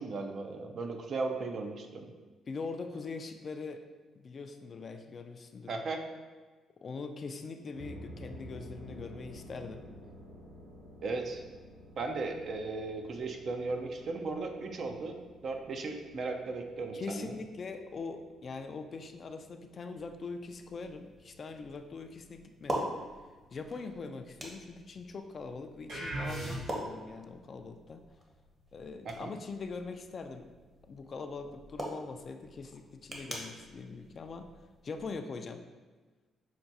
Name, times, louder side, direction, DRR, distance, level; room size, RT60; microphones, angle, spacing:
voice 1, 0.0-2.1 5.7-6.0 11.0-11.4 12.0-15.1 15.4-17.3 29.0-29.3, right 3 dB, 55° right, 4 dB, 0.4 m, -36 dB
voice 2, 2.5-3.8 4.2-5.8 6.8-9.8 16.9-22.9 23.5-28.0 28.7-30.5 30.8-34.5 34.8-35.6, left 4 dB, 45° left, 6 dB, 0.3 m, -42 dB
sound 1, 7.7-22.9, equal, 70° right, 1.2 m, -53 dB
sound 2, 20.0-35.2, right 1 dB, 25° right, 0.8 m, -44 dB
sound 3, 25.9-27.0, right 1 dB, 90° right, 1.5 m, -37 dB
5.7 x 2.2 x 2.7 m, 1.3 s
cardioid pair, 90°, 0 cm